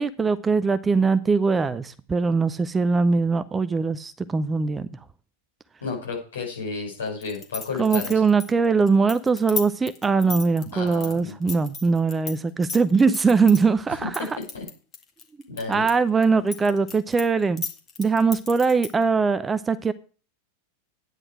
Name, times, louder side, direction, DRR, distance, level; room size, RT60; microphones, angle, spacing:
voice 1, 0.0-4.9 7.8-14.3 15.7-17.6 18.0-19.9, right 4 dB, 15° right, 0.6 m, -21 dB
voice 2, 5.8-8.2 10.7-11.3 14.5-14.6 15.5-15.8, left 4 dB, 65° left, 5.9 m, -32 dB
sound 1, 7.2-12.3 12.6-13.6 14.1-15.9 16.2-19.0, left 5 dB, 30° left, 2.0 m, -34 dB
11.0 x 9.9 x 4.8 m
figure-of-eight pair, 90°, 0 cm